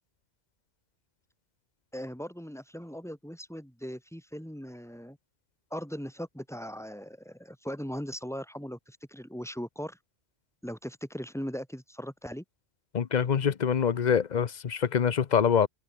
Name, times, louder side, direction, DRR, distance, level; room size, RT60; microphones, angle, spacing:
voice 1, 1.9-5.2 5.7-10.0 10.6-12.4, equal, ahead, 5.1 m, -39 dB
voice 2, 12.9-15.7, left 7 dB, 45° left, 0.8 m, -25 dB
omnidirectional pair, 1.2 m